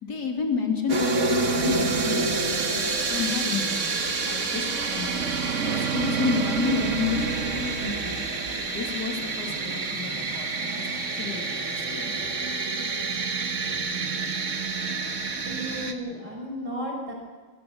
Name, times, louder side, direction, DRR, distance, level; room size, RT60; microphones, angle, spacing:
voice 1, 0.0-8.2 8.6-12.1, left 6 dB, 55° left, 2 dB, 3.4 m, -31 dB
sound 1, 0.9-15.9, right 4 dB, 40° right, 1.7 m, -28 dB
voice 2, 15.4-17.1, right 1 dB, 60° right, 0 dB, 6.7 m, -33 dB
24.5 x 17.0 x 7.2 m, 1.4 s
omnidirectional pair, 2.1 m